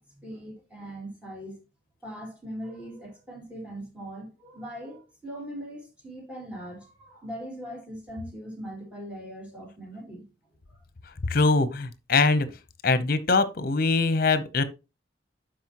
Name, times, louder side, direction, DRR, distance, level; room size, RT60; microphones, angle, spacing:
voice 1, 0.2-1.6 2.0-10.3 10.7-10.8, equal, 5° right, 3.4 m, -40 dB
voice 2, 11.3-12.5 12.8-14.6, left 3 dB, 55° left, 0.8 m, -22 dB
11.5 x 5.0 x 3.0 m
head